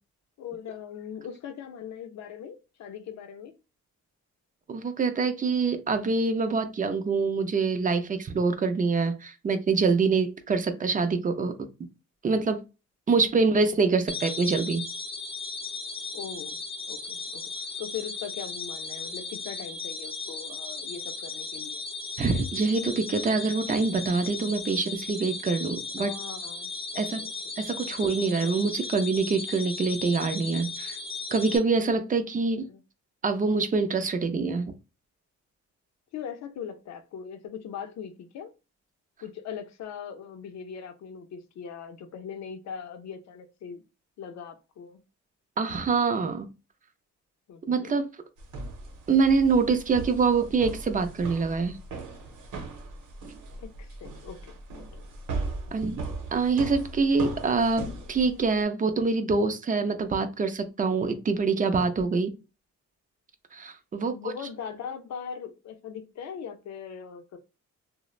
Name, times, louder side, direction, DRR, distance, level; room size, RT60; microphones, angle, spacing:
voice 1, 0.4-3.5 10.7-10.8 14.1-14.2 16.1-16.6 16.9-17.5 17.8-21.8 26.0-27.3 27.8-28.1 32.6-32.8 36.1-38.5 39.2-43.8 44.2-45.0 47.5-47.9 53.6-55.1 55.5-55.8 64.0-67.4, left 7 dB, 60° left, 0.6 m, -40 dB
voice 2, 4.7-11.5 12.2-12.6 13.1-14.8 22.2-26.1 27.0-27.2 27.6-31.0 31.3-32.7 33.2-34.7 45.6-46.5 47.7-48.1 49.1-51.8 55.7-56.0 56.3-62.3 63.5-64.3, right 4 dB, 25° right, 0.4 m, -25 dB
sound 1, 14.1-31.6, left 3 dB, 15° left, 0.7 m, -36 dB
sound 2, 48.4-58.6, right 3 dB, 80° right, 0.8 m, -38 dB
3.0 x 2.0 x 2.3 m
cardioid pair, 90°, 30 cm